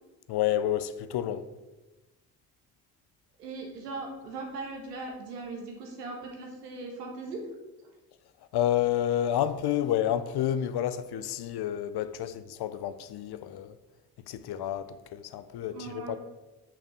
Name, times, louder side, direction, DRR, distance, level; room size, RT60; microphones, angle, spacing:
voice 1, 0.3-1.5 8.5-13.7 14.3-16.2, left 11 dB, 55° left, 0.7 m, -29 dB
voice 2, 3.4-7.4 15.7-16.2, right 3 dB, 90° right, 1.5 m, -39 dB
6.6 x 5.8 x 6.3 m
hypercardioid pair, 45°, 47 cm